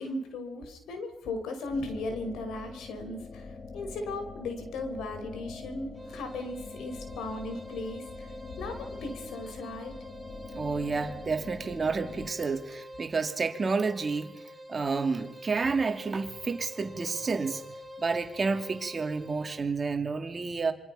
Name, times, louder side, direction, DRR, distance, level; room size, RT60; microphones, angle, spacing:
voice 1, 0.0-3.5 3.7-8.3 8.6-10.0, left 2 dB, 80° left, 6 dB, 5.1 m, -37 dB
sound 1, 1.7-12.3, left 3 dB, 30° left, 2.1 m, -44 dB
sound 2, 5.9-19.6, equal, 5° right, 3.7 m, -47 dB
voice 2, 10.5-14.4 14.7-17.6 18.0-20.7, right 4 dB, 30° right, 6 dB, 2.7 m, -30 dB
26.5 x 24.5 x 5.7 m, 0.85 s
cardioid pair, 90°, 0 cm